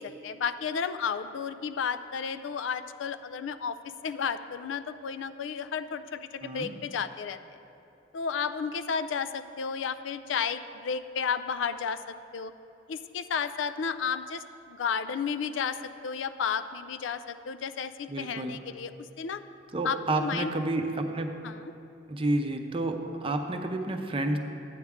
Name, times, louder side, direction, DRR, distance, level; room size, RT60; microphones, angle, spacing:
voice 1, 0.0-7.4 8.1-12.5 12.9-18.9 19.2-19.4 19.8-20.5 21.4-21.7, left 6 dB, 90° left, 12 dB, 0.4 m, -32 dB
voice 2, 6.4-6.7 18.1-18.6 19.7-21.3 22.1-24.4, right 2 dB, 30° right, 5 dB, 0.6 m, -30 dB
12.0 x 8.6 x 3.6 m, 2.9 s
head